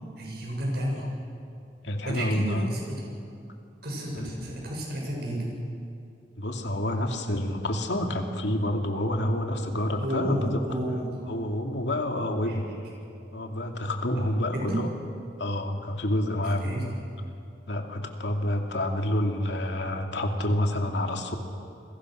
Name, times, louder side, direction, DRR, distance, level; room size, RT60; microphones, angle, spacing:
voice 1, 0.2-1.1 2.0-3.1 3.8-5.5 9.2-9.3 10.0-11.1 12.5-12.6 14.1-14.3 14.5-14.8 16.6-17.0, right 1 dB, 65° right, -1 dB, 7.1 m, -31 dB
voice 2, 1.8-2.8 4.2-4.4 6.4-10.8 11.3-12.7 13.3-14.9 15.4-16.8 17.7-21.4, left 1 dB, 80° left, 3 dB, 2.5 m, -28 dB
29.5 x 22.0 x 6.5 m, 2.5 s
head